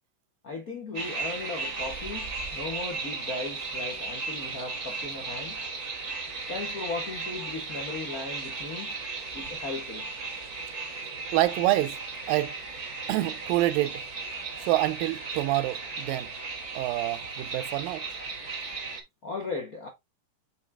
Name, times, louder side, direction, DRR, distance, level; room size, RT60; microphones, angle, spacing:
voice 1, 0.4-5.6 6.5-8.9 9.3-10.1 19.2-19.9, left 3 dB, 90° left, 0.7 m, -37 dB
sound 1, 0.9-19.0, right 4 dB, 55° right, 0.7 m, -36 dB
voice 2, 11.3-12.0 12.3-12.5 13.1-14.0 14.6-16.3 16.7-18.1, right 16 dB, 80° right, 2.3 m, -27 dB
7.1 x 3.8 x 3.5 m
omnidirectional pair, 4.1 m